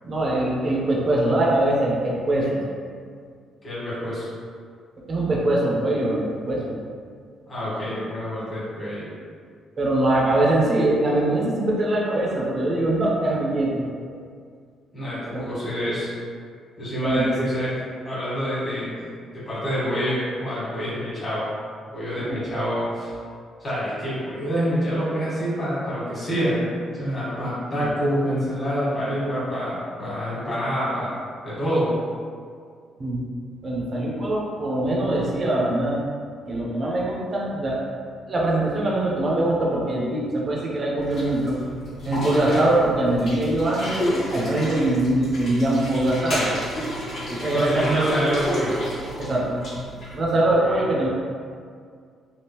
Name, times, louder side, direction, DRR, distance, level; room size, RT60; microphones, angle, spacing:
voice 1, 0.0-2.6 5.1-6.8 9.8-13.8 15.3-15.4 17.0-17.6 22.2-22.4 33.0-33.2 33.6-36.0 36.5-37.8 38.3-41.6 42.0-46.5 47.3-48.2 49.2-49.6 50.1-51.1, right 1 dB, 30° right, -4 dB, 0.5 m, -22 dB
voice 2, 3.6-4.3 7.5-9.1 14.9-16.1 16.8-17.7 18.0-19.1 19.3-21.4 21.9-23.1 23.6-26.6 27.0-31.1 31.4-31.9 42.4-42.7 47.5-48.7 50.5-50.8, equal, 30° left, -10 dB, 1.3 m, -27 dB
sound 1, 41.0-50.2, equal, 50° left, 1.2 m, -31 dB
3.4 x 2.4 x 2.8 m, 2.1 s
cardioid pair, 165°, 0 cm